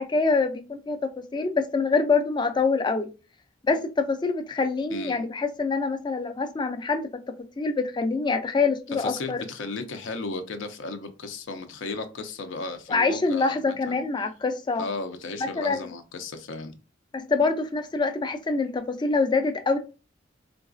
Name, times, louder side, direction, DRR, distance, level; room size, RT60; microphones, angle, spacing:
voice 1, 0.0-3.1 3.6-7.1 7.6-9.4 12.9-14.8 15.4-15.9 17.1-19.8, left 4 dB, 25° left, 0.4 m, -25 dB
voice 2, 9.0-14.0 14.8-16.8, left 3 dB, 75° left, 0.5 m, -35 dB
3.9 x 2.4 x 2.4 m
head